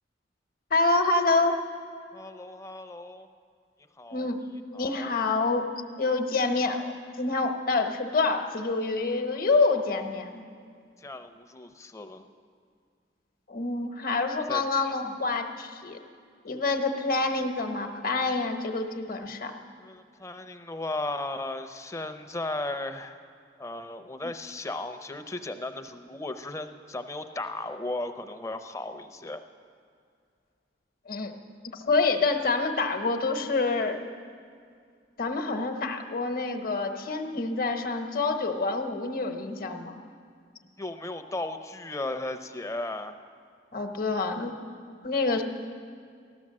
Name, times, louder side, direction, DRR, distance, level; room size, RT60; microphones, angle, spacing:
voice 1, 0.7-1.6 4.1-4.4 4.7-5.6 6.0-10.4 13.5-16.0 16.4-19.5 24.2-24.3 31.1-31.3 31.7-34.0 35.2-40.0 43.7-44.5 45.0-45.4, left 3 dB, 55° left, 5 dB, 1.1 m, -27 dB
voice 2, 2.1-3.3 4.0-4.3 4.7-5.1 11.0-12.3 14.5-14.6 19.8-23.1 23.6-29.4 40.8-43.2, left 2 dB, 15° left, 8 dB, 0.7 m, -36 dB
14.5 x 12.0 x 7.5 m, 2.2 s
head